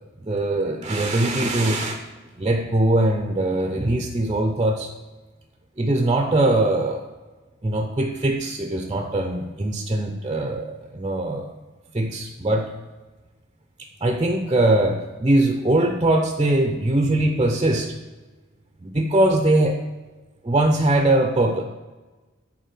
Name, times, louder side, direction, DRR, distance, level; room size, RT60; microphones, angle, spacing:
voice 1, 0.2-2.0 2.4-4.9 5.8-7.0 7.6-11.5 11.9-12.7 14.0-17.9 18.8-19.8 20.4-21.6, right 1 dB, 20° right, 3 dB, 0.6 m, -21 dB
8.3 x 4.3 x 5.9 m, 1.2 s
head